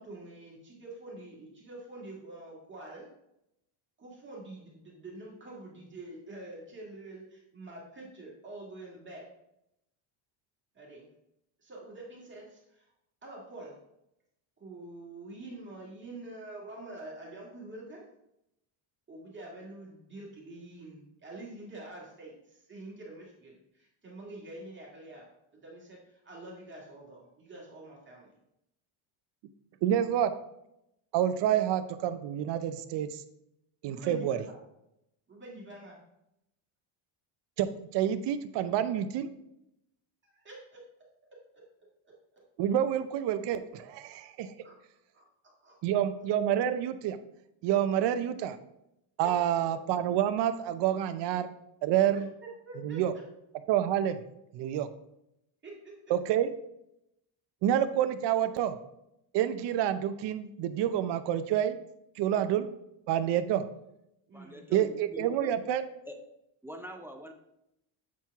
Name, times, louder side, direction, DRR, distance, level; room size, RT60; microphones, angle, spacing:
voice 1, 0.0-3.1 4.0-9.3 10.7-11.1 11.6-12.9 13.2-13.8 14.6-18.1 19.1-25.3 25.5-28.3 31.4-31.6 33.9-34.6 35.3-36.0 40.2-40.8 41.3-41.6 42.0-42.4 44.6-44.8 45.1-45.2 45.6-45.8 49.2-49.3 52.1-53.3 55.6-56.0 64.3-64.7, right 2 dB, 25° right, -3 dB, 1.9 m, -46 dB
voice 2, 29.8-30.3 31.1-33.2 33.8-34.4 37.6-39.3 42.6-44.5 45.8-47.2 47.6-48.6 49.2-51.5 51.8-52.3 52.8-53.1 53.7-54.2 54.5-54.9 56.1-56.5 57.6-58.8 59.3-61.8 62.2-62.7 63.1-63.6 64.7-65.8, right 10 dB, 60° right, 10 dB, 0.6 m, -28 dB
voice 3, 64.3-65.6 66.1-66.3 66.6-67.3, equal, 5° right, 5 dB, 0.3 m, -44 dB
7.4 x 4.4 x 3.5 m, 0.82 s
cardioid pair, 125°, 49 cm